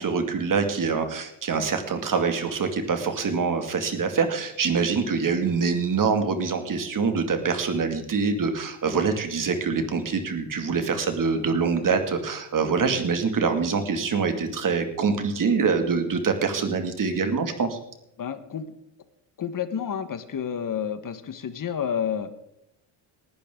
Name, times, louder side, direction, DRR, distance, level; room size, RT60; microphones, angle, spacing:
voice 1, 0.0-17.8, right 5 dB, 40° right, 6 dB, 2.4 m, -25 dB
voice 2, 18.2-18.7 19.4-22.3, left 8 dB, 40° left, 11 dB, 1.5 m, -30 dB
19.0 x 12.0 x 3.9 m, 0.80 s
cardioid pair, 105°, 50 cm